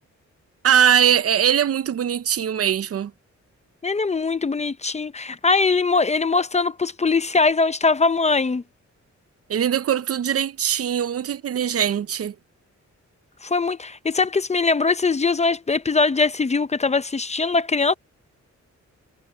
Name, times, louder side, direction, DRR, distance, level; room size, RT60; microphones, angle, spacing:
voice 1, 0.6-3.1 9.5-12.3, right 9 dB, 55° right, 0.5 m, -21 dB
voice 2, 3.8-8.6 13.4-17.9, left 4 dB, 25° left, 0.5 m, -21 dB
wide cardioid pair, 175°, 29 cm